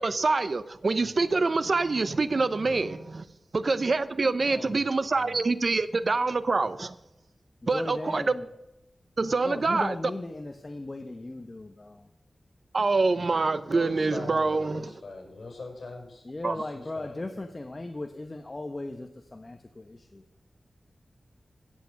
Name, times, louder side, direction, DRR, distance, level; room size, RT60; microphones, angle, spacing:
voice 1, 0.0-3.2 3.5-6.9 7.7-8.2 9.2-9.9 12.7-14.9 16.4-16.6, right 3 dB, 55° right, 14 dB, 0.8 m, -26 dB
voice 2, 2.6-3.0 13.7-17.5, left 3 dB, 60° left, 2 dB, 6.1 m, -42 dB
voice 3, 4.4-5.3 7.7-8.5 9.4-12.1 16.2-20.2, left 2 dB, 35° left, 6 dB, 1.0 m, -38 dB
15.5 x 8.4 x 6.6 m, 0.91 s
wide cardioid pair, 75°, 0 cm